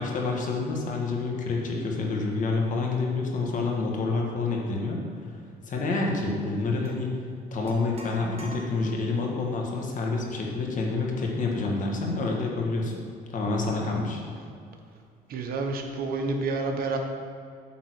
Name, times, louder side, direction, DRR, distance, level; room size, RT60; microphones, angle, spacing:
voice 1, 0.0-5.0 5.6-7.1 7.5-12.9 13.3-14.2, left 3 dB, 50° left, 0 dB, 1.5 m, -28 dB
sound 1, 6.8-7.0 7.7-9.1, right 1 dB, 35° right, 1.6 m, -46 dB
voice 2, 15.3-17.0, right 3 dB, 60° right, 4 dB, 1.0 m, -29 dB
8.6 x 3.9 x 6.4 m, 2.3 s
cardioid pair, 110°, 17 cm